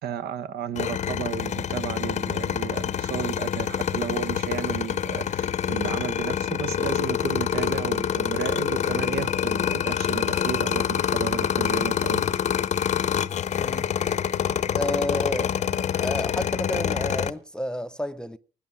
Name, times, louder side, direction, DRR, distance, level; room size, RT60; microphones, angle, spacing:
voice 1, 0.0-12.2, right 9 dB, 70° right, 1.1 m, -33 dB
sound 1, 0.8-17.3, left 9 dB, 45° left, 0.8 m, -26 dB
voice 2, 13.6-13.9 14.7-18.4, left 1 dB, 5° left, 0.6 m, -31 dB
18.0 x 10.0 x 6.1 m
cardioid pair, 110°, 17 cm